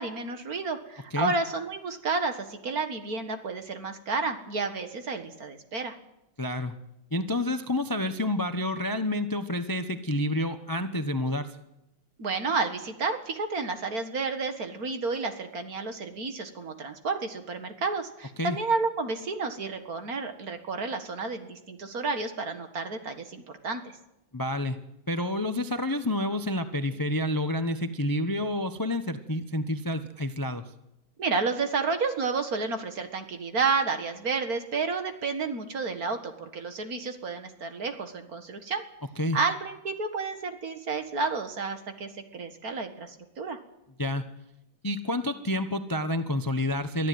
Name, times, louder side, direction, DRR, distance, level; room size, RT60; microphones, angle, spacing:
voice 1, 0.0-5.9 12.2-23.9 31.2-38.8 39.3-43.6, right 4 dB, 45° right, 7 dB, 2.2 m, -31 dB
voice 2, 6.4-6.7 7.1-11.6 18.4-18.6 24.3-24.8 25.1-30.6 39.2-39.4 44.0-44.2 44.8-47.1, left 1 dB, 25° left, 9 dB, 0.4 m, -29 dB
23.5 x 14.0 x 9.5 m, 0.88 s
omnidirectional pair, 2.3 m